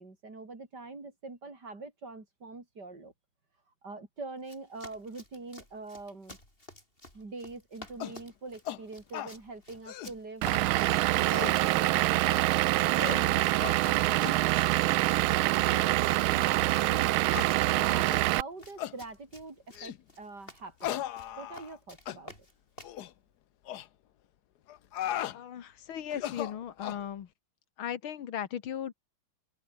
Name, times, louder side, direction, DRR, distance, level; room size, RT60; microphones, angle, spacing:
voice 1, 0.0-3.1 3.8-6.4 7.1-12.2 12.7-14.6 15.3-17.2 17.8-21.0 21.4-22.3, right 3 dB, 50° right, 5.0 m, -44 dB
Run, 4.4-23.0, left 1 dB, 25° left, 7.0 m, -52 dB
sound 1, 8.0-8.2 8.6-8.8 9.1-9.3 9.7-10.1 10.5-10.6 11.1-11.6 12.2-12.5 12.9-13.2 13.6-13.8 14.2-14.4 15.0-15.2 15.6-15.8 16.4-16.5 17.3-17.5 18.0-18.2 18.8-19.0 19.7-20.0 20.8-21.8 22.1-22.2 22.8-23.1 23.7-23.9 24.7-25.4 26.1-27.0, left 12 dB, 60° left, 1.2 m, -37 dB
Vehicle / Engine, 10.4-18.4, right 18 dB, 80° right, 1.4 m, -25 dB
voice 2, 25.3-27.3 27.8-28.9, left 9 dB, 80° left, 2.2 m, -37 dB
open air
omnidirectional pair, 2.2 m